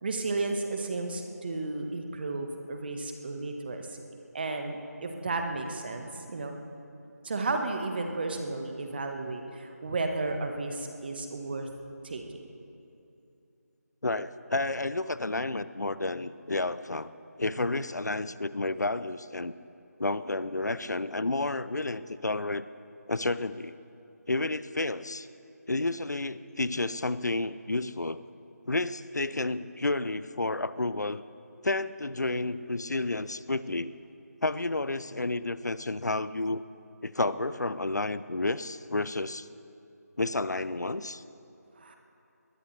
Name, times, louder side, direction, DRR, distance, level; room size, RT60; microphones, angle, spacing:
voice 1, 0.0-4.0 4.3-6.6 7.2-11.7 12.0-12.2 41.8-42.0, right 3 dB, 35° right, 4 dB, 1.4 m, -33 dB
voice 2, 14.0-17.1 17.4-19.5 20.0-22.7 23.1-23.7 24.3-25.3 25.7-28.2 28.7-31.2 31.6-33.9 34.4-36.6 37.0-39.5 40.2-41.2, left 2 dB, 80° left, 15 dB, 0.7 m, -31 dB
21.5 x 20.5 x 3.3 m, 2.8 s
figure-of-eight pair, 160°, 9 cm